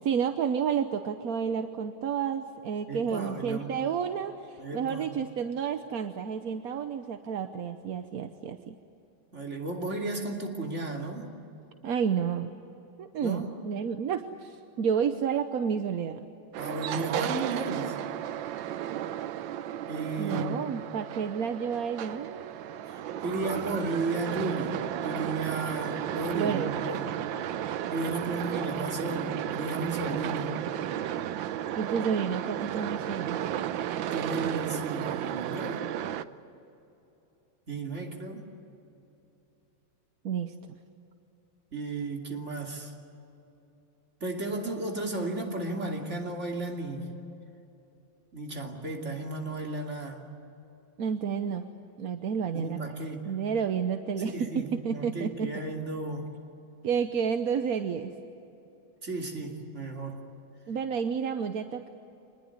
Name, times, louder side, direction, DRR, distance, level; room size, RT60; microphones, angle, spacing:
voice 1, 0.0-8.7 11.8-12.5 13.0-16.2 20.2-22.5 26.3-26.7 31.8-33.4 40.2-40.8 51.0-51.7 52.0-52.8 53.3-55.6 56.8-58.1 60.7-61.9, right 7 dB, 55° right, 8 dB, 1.1 m, -30 dB
voice 2, 2.9-3.8 4.6-5.1 9.3-11.3 13.2-13.5 16.6-18.0 19.9-20.6 22.9-27.1 27.9-30.6 34.0-35.9 37.7-38.5 41.7-42.9 44.2-47.1 48.3-50.3 52.5-53.3 54.2-56.3 59.0-60.2, right 2 dB, 35° right, 1 dB, 3.1 m, -34 dB
sound 1, 16.5-36.2, right 11 dB, 75° right, 1.4 m, -33 dB
26.0 x 20.5 x 9.7 m, 2.9 s
omnidirectional pair, 2.2 m